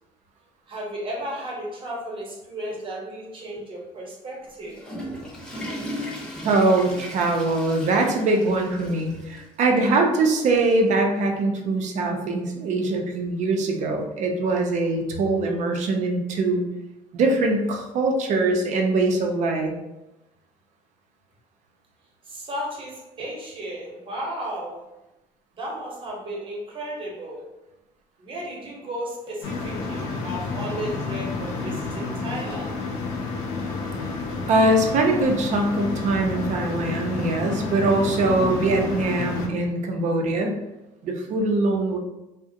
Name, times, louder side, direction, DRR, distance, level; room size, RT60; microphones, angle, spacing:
voice 1, 0.7-4.8 22.2-24.8 25.5-27.5 28.2-32.7, right 1 dB, 40° right, -3 dB, 0.9 m, -34 dB
Water / Toilet flush, 4.5-9.5 9.8-9.9 10.6-10.7 12.0-12.1, equal, 5° left, 0.7 m, -37 dB
voice 2, 6.4-16.6 17.1-19.7 34.5-40.6 41.0-42.0, right 2 dB, 55° right, 2 dB, 0.5 m, -22 dB
room big fan, 29.4-39.5, left 3 dB, 80° left, 0.5 m, -30 dB
2.4 x 2.1 x 2.7 m, 0.98 s
cardioid pair, 100°, 14 cm